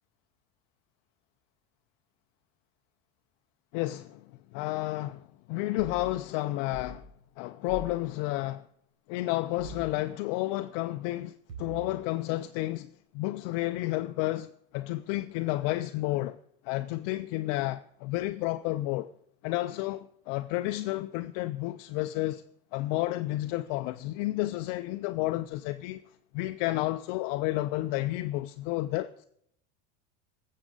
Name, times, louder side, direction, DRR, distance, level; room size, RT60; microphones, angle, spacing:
voice 1, 3.7-4.2 4.5-7.1 7.4-8.7 9.1-16.4 16.6-19.1 19.4-22.4 22.7-26.0 26.3-29.3, left 17 dB, 65° left, 0.5 m, -31 dB
sound 1, 5.8-6.0 6.7-7.0 7.7-7.9 9.6-9.9 11.5-12.0, right 2 dB, 75° right, 4.2 m, -42 dB
16.0 x 7.4 x 3.9 m
supercardioid pair, 110°, 36 cm